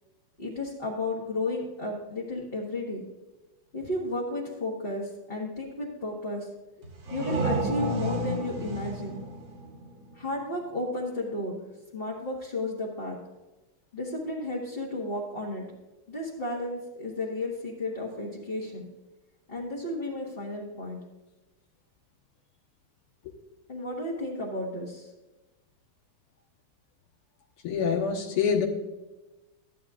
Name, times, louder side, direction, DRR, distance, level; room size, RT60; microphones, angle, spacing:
voice 1, 0.4-3.0 3.7-6.5 7.1-9.3 10.1-11.6 11.9-13.2 13.9-15.7 16.1-18.9 19.5-21.0 23.7-25.1, left 2 dB, 30° left, -5 dB, 1.5 m, -33 dB
sound 1, 6.8-10.4, right 1 dB, 65° right, 2.2 m, -32 dB
voice 2, 27.6-28.7, left 6 dB, 85° left, 1 dB, 2.2 m, -25 dB
14.0 x 10.5 x 2.5 m, 1.1 s
omnidirectional pair, 2.4 m